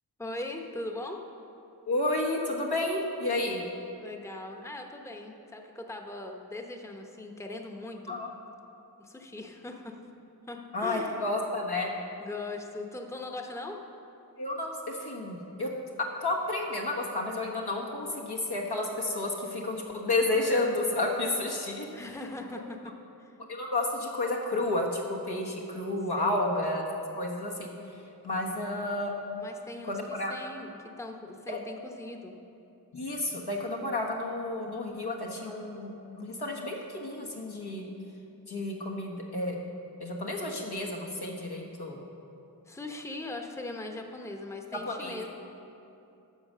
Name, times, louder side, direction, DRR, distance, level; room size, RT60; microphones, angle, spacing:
voice 1, 0.2-1.2 4.0-8.2 9.0-10.0 10.5-11.3 12.2-13.8 21.9-22.9 23.2-23.3 26.2-26.4 29.4-32.4 42.7-45.3, left 2 dB, 5° left, 2 dB, 0.8 m, -40 dB
voice 2, 1.9-3.6 8.1-8.3 10.7-11.9 14.4-15.7 16.2-21.9 23.5-26.8 27.2-27.7 28.2-29.1 29.8-30.3 31.5-31.6 32.9-37.9 38.5-39.6 40.0-42.1 44.7-45.3, left 2 dB, 80° left, -2 dB, 1.4 m, -31 dB
9.8 x 6.2 x 6.6 m, 2.8 s
wide cardioid pair, 40°, 39 cm